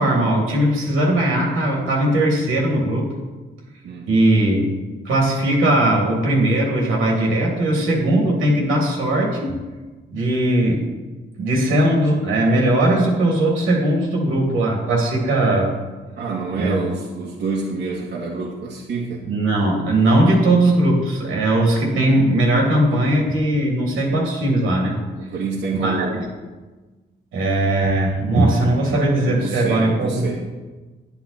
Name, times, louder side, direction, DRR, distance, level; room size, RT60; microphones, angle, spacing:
voice 1, 0.0-3.1 4.1-4.7 5.0-9.5 10.1-10.8 11.4-15.7 16.6-16.8 19.3-25.0 25.8-26.2 27.3-30.3, right 1 dB, 85° right, -1 dB, 3.1 m, -19 dB
voice 2, 16.2-19.2 25.2-26.2 29.2-30.5, right 4 dB, 65° right, -4 dB, 2.0 m, -27 dB
10.0 x 9.9 x 4.4 m, 1.3 s
cardioid pair, 90°, 20 cm